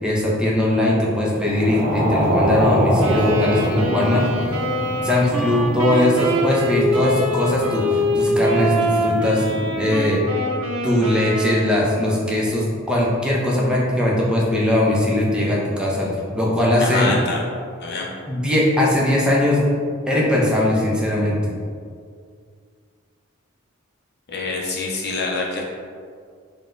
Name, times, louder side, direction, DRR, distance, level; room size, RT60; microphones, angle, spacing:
voice 1, 0.0-4.4 5.0-9.4 9.8-10.2 10.8-17.1 18.3-19.6 20.1-21.5, left 1 dB, 5° right, -4 dB, 0.6 m, -20 dB
sound 1, 1.3-10.1, equal, 20° right, 1.3 m, -25 dB
Wind instrument woodwind instrument, 3.0-12.0, equal, 80° right, 0.6 m, -24 dB
voice 2, 16.8-17.4 17.8-18.1 24.3-25.6, left 3 dB, 50° left, -2 dB, 0.5 m, -26 dB
4.1 x 2.2 x 3.6 m, 2.1 s
head